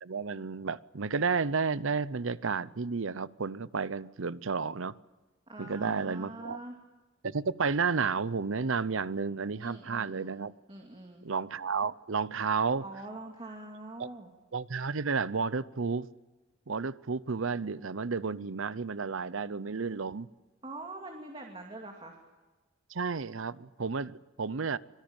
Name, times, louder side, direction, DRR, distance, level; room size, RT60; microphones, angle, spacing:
voice 1, 0.0-4.9 5.6-6.6 7.2-10.5 11.2-12.8 14.0-14.1 14.5-16.1 16.7-20.3 22.9-24.8, right 5 dB, 70° right, 18 dB, 0.7 m, -32 dB
voice 2, 5.5-6.7 9.6-10.4 10.7-11.2 12.8-14.3 20.6-22.2, right 2 dB, 25° right, 1 dB, 2.5 m, -44 dB
26.0 x 20.5 x 8.9 m, 1.2 s
head